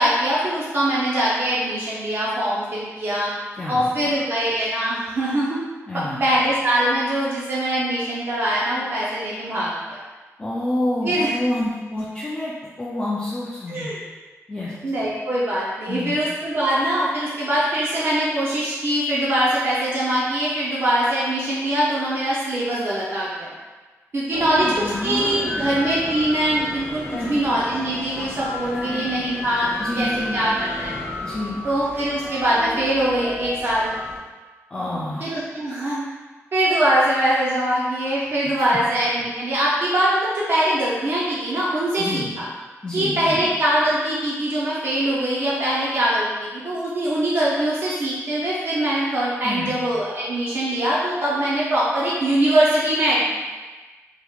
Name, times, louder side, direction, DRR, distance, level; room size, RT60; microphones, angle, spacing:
voice 1, 0.0-3.3 3.7-5.6 5.9-10.0 11.0-11.3 13.7-14.0 14.8-23.5 24.1-24.7 25.0-29.7 30.0-30.9 31.6-33.9 35.2-36.0 36.5-42.5 42.9-53.2, right 1 dB, 45° right, -7 dB, 0.5 m, -22 dB
voice 2, 3.6-3.9 5.9-6.2 10.4-12.5 12.8-13.9 14.5-14.7 15.9-16.2 24.3-25.7 27.1-27.4 28.7-29.0 29.8-30.4 31.2-31.6 34.7-35.3 38.6-38.7 42.0-42.3 42.8-43.4 49.4-49.8, left 1 dB, 15° left, -7 dB, 0.3 m, -28 dB
sound 1, 24.3-34.2, left 1 dB, 30° right, 1.4 m, -33 dB
3.4 x 2.8 x 2.3 m, 1.3 s
wide cardioid pair, 175°, 5 cm